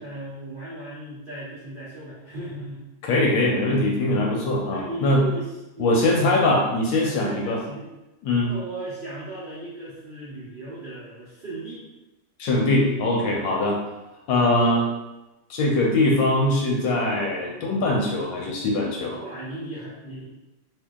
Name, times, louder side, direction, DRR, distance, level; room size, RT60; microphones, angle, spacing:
voice 1, 0.0-2.9 3.6-3.7 4.3-6.3 7.0-7.9 8.4-11.8 13.3-13.5 19.1-20.2, right 2 dB, 60° right, -10 dB, 0.5 m, -37 dB
voice 2, 3.0-5.2 5.8-7.6 8.2-8.5 12.4-13.8 14.3-14.9 15.5-19.2, left 2 dB, 70° left, -1 dB, 1.2 m, -22 dB
3.0 x 2.7 x 3.5 m, 1.0 s
omnidirectional pair, 2.3 m